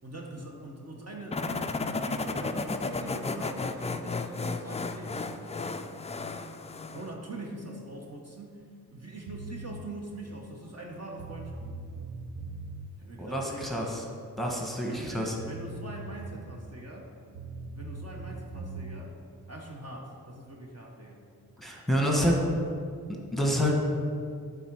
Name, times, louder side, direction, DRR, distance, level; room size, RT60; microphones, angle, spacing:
voice 1, 0.0-5.8 6.9-8.7 8.9-11.6 13.0-13.8 14.9-17.1 17.7-19.1 19.5-21.3 22.0-22.3 23.3-23.8, right 2 dB, 40° right, -1 dB, 1.0 m, -43 dB
sound 1, 1.3-7.1, left 3 dB, 20° left, 0.3 m, -33 dB
sound 2, 9.3-9.8 10.8-10.9 11.2-12.9 15.0-15.1 15.4-16.6 17.3-19.0, right 3 dB, 65° right, 1.0 m, -41 dB
voice 2, 13.2-14.0 14.4-15.3 21.6-22.3 23.1-23.7, equal, ahead, -1 dB, 1.3 m, -28 dB
8.1 x 3.8 x 4.6 m, 2.3 s
cardioid pair, 50°, 39 cm